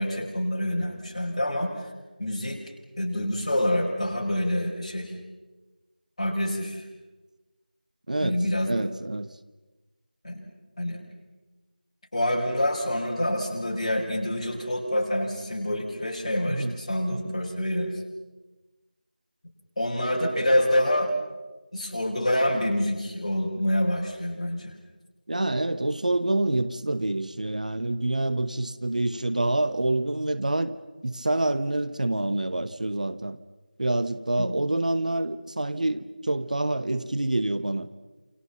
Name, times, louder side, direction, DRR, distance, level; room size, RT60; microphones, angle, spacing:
voice 1, 0.0-1.7 2.2-2.6 3.0-5.1 6.2-6.8 8.2-8.8 10.2-10.5 10.8-11.0 12.1-17.9 19.8-21.1 21.7-24.7 34.4-34.5, left 1 dB, 40° left, 6.4 m, -26 dB
voice 2, 8.1-9.3 16.5-16.7 17.1-17.2 25.3-30.8 31.0-33.4 33.8-37.9, right 2 dB, 55° right, 1.2 m, -27 dB
29.0 x 28.0 x 5.9 m
figure-of-eight pair, 170°, 5 cm